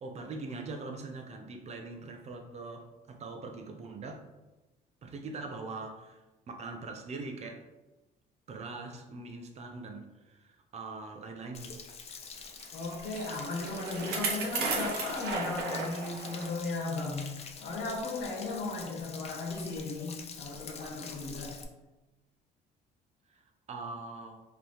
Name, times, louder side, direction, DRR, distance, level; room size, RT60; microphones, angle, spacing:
voice 1, 0.0-4.3 5.0-7.7 8.5-11.8 23.3-24.4, right 3 dB, 40° right, 4 dB, 0.7 m, -42 dB
Stream / Splash splatter / Trickle dribble, 11.5-21.6, left 5 dB, 40° left, 0.6 m, -46 dB
Bicycle, 12.6-16.5 17.0-17.1 17.9-18.0, right 4 dB, 65° right, 0.9 m, -35 dB
voice 2, 12.7-21.5, left 3 dB, 90° left, -2 dB, 1.4 m, -36 dB
5.1 x 3.1 x 3.0 m, 1.1 s
cardioid pair, 110°, 17 cm